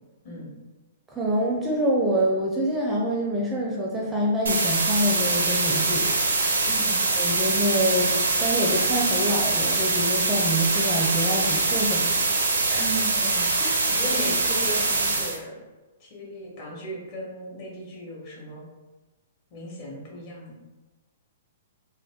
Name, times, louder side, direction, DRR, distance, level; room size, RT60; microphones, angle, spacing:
voice 1, 1.1-6.3 7.2-12.2 12.7-12.8 13.6-13.8, equal, 10° right, -3 dB, 0.5 m, -26 dB
sound 1, 4.5-15.4, right 3 dB, 85° right, 0.5 m, -23 dB
voice 2, 6.6-7.0 12.8-13.5 13.9-15.5 16.0-18.6 19.5-20.5, right 1 dB, 45° left, -4 dB, 1.1 m, -36 dB
2.3 x 2.1 x 3.5 m, 1.2 s
hypercardioid pair, 125°, 0 cm